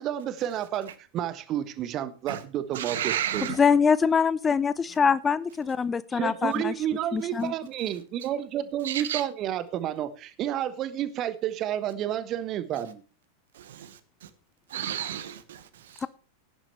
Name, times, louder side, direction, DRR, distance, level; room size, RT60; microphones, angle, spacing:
voice 1, 0.0-3.4 6.1-13.0, right 11 dB, 35° right, 1.2 m, -30 dB
voice 2, 2.7-3.6 8.8-9.2 13.5-14.3 14.7-16.0, right 10 dB, 60° right, 1.2 m, -33 dB
voice 3, 3.6-6.7 7.1-7.5, left 6 dB, 15° left, 0.6 m, -23 dB
16.0 x 10.5 x 3.2 m
figure-of-eight pair, 90°, 0 cm